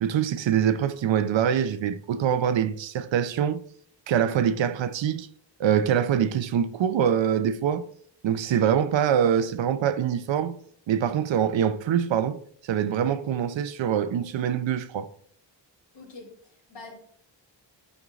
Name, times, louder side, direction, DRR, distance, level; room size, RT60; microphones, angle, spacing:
voice 1, 0.0-3.6 4.1-5.3 5.6-7.8 8.2-10.6 10.9-12.4 12.6-15.1, right 9 dB, 80° right, 0.6 m, -24 dB
voice 2, 15.9-16.9, left 3 dB, 70° left, 3.3 m, -45 dB
11.0 x 5.4 x 2.4 m
wide cardioid pair, 115°, 45 cm